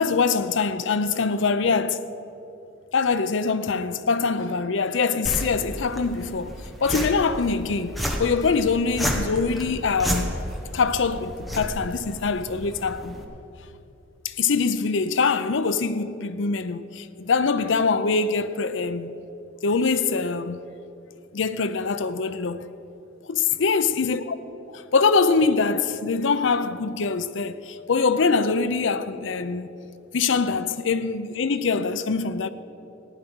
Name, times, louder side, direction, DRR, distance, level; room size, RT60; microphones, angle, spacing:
voice 1, 0.0-2.0 2.9-6.5 6.8-10.4 10.7-13.2 14.2-19.1 19.6-20.6 21.3-22.7 23.3-24.4 24.7-29.7 30.1-32.5, left 4 dB, 70° left, 0.6 m, -23 dB
sound 1, 5.3-13.3, equal, ahead, 1.2 m, -32 dB
15.0 x 10.0 x 6.1 m
head